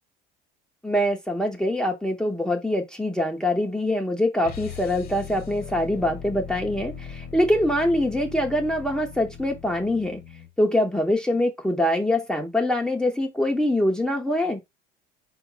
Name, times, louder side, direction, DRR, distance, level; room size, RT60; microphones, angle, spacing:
voice 1, 0.8-10.2 10.6-14.6, left 1 dB, 5° left, 0.8 m, -24 dB
sound 1, 4.4-10.5, left 7 dB, 50° left, 1.1 m, -39 dB
4.5 x 2.4 x 4.8 m
supercardioid pair, 115°, 20 cm